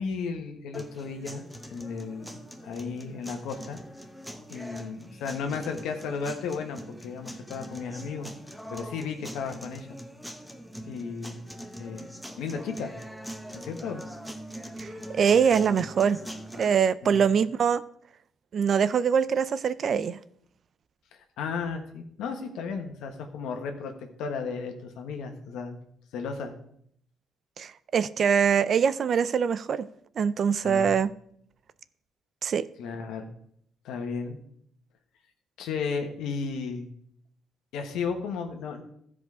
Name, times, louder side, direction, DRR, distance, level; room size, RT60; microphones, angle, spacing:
voice 1, 0.0-3.8 4.5-8.3 8.7-10.0 10.9-11.4 11.8-12.1 12.4-12.9 13.6-14.0 17.0-17.3 21.4-25.8 26.1-26.5 30.6-30.9 32.8-33.3 33.8-34.4 35.6-36.9 37.7-38.8, left 5 dB, 90° left, 1.3 m, -34 dB
sound 1, 0.7-16.7, equal, ahead, 1.0 m, -42 dB
voice 2, 14.8-16.2 16.6-17.8 18.5-20.2 27.6-29.9 30.2-31.1 32.4-32.7, right 7 dB, 55° right, 0.4 m, -23 dB
13.5 x 5.1 x 4.9 m
cardioid pair, 90°, 0 cm